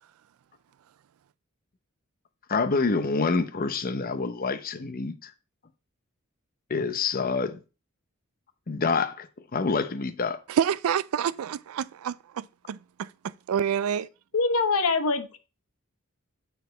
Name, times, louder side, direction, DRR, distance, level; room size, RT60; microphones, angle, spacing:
voice 1, 2.5-5.3 6.7-7.6 8.7-9.3 9.5-10.4, left 4 dB, 40° left, 0.7 m, -27 dB
voice 2, 10.5-14.1, right 8 dB, 75° right, 0.3 m, -28 dB
voice 3, 14.3-15.4, left 3 dB, 80° left, 0.9 m, -24 dB
8.5 x 4.6 x 3.9 m
head